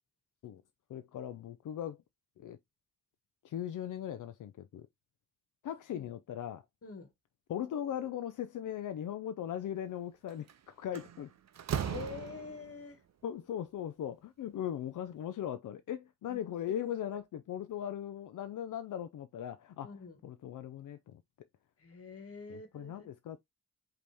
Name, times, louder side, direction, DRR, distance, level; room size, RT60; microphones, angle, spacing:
voice 1, 0.9-2.0 2.4-2.6 3.4-4.9 5.6-6.6 7.5-11.3 13.2-19.9 20.2-21.2 22.5-23.4, left 10 dB, 75° left, 0.5 m, -39 dB
Slam, 10.3-10.5 10.9-12.8, right 8 dB, 60° right, 0.6 m, -37 dB
voice 2, 11.8-13.0 16.3-16.4 16.7-17.2 19.8-20.2 21.8-23.1, left 4 dB, 45° left, 1.5 m, -46 dB
5.1 x 3.0 x 3.4 m
wide cardioid pair, 95°, 31 cm